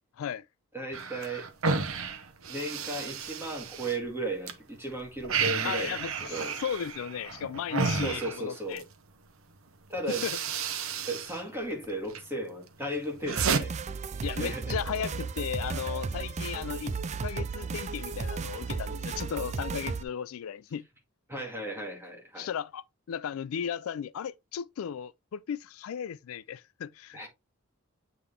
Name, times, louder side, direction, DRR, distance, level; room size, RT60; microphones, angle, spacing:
voice 1, 0.7-1.5 2.5-6.5 8.0-8.8 9.9-10.2 11.1-13.7 14.2-14.8 21.3-22.5 27.1-27.3, right 1 dB, 10° right, 2.0 m, -35 dB
sound 1, 0.9-4.5 4.9-8.9 9.6-9.7 10.0-11.4 11.7-12.2 12.7-13.6, right 5 dB, 85° right, 0.9 m, -32 dB
voice 2, 5.6-6.1 6.6-8.8 10.2-10.4 14.2-16.9 17.2-20.9 22.4-27.3, left 8 dB, 85° left, 0.3 m, -35 dB
sound 2, 13.4-20.0, right 4 dB, 35° right, 0.4 m, -34 dB
8.0 x 3.7 x 3.4 m
head